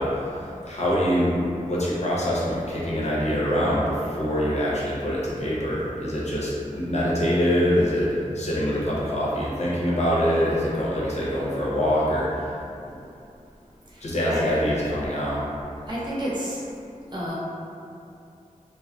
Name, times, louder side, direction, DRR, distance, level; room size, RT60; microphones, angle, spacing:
voice 1, 0.0-12.5 14.0-15.4, equal, 55° left, -7 dB, 0.8 m, -24 dB
voice 2, 15.9-16.6 17.1-17.3, equal, 35° right, -8 dB, 0.8 m, -29 dB
2.2 x 2.1 x 3.8 m, 2.7 s
wide cardioid pair, 65°, 14 cm